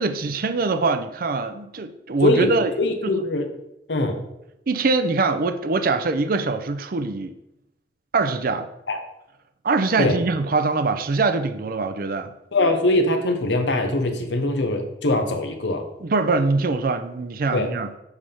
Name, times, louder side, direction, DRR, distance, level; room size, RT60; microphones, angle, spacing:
voice 1, 0.0-2.7 3.0-3.1 4.7-7.3 8.1-8.7 9.6-12.3 16.0-17.9, right 3 dB, 55° right, 9 dB, 0.5 m, -23 dB
voice 2, 2.2-3.5 3.9-4.2 8.9-9.0 10.0-10.2 12.5-15.9 17.5-17.7, left 2 dB, 85° left, 5 dB, 0.9 m, -22 dB
8.1 x 3.5 x 5.5 m, 0.84 s
head